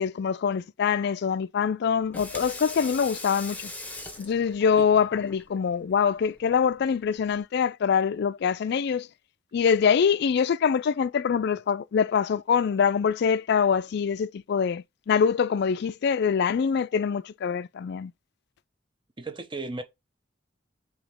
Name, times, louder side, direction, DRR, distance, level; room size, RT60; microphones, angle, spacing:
voice 1, 0.0-3.7 4.2-9.1 9.5-18.1, left 6 dB, 60° left, 0.3 m, -24 dB
Water tap faucet / Sink (filling or washing), 1.9-7.4, left 2 dB, 10° left, 1.1 m, -42 dB
voice 2, 19.2-19.8, right 3 dB, 25° right, 0.8 m, -35 dB
5.0 x 3.0 x 3.5 m
head